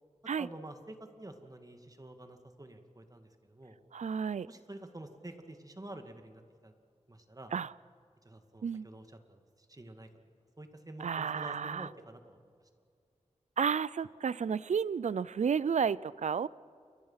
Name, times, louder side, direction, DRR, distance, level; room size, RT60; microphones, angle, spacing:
voice 1, 0.4-3.8 4.5-6.7 7.1-7.5 8.2-10.1 10.6-12.4, right 1 dB, 30° right, 6 dB, 2.3 m, -48 dB
voice 2, 3.9-4.5 7.5-7.7 8.6-8.9 11.0-11.9 13.6-16.5, right 6 dB, 70° right, 20 dB, 0.5 m, -32 dB
29.5 x 22.5 x 5.8 m, 2.3 s
wide cardioid pair, 60°, 12 cm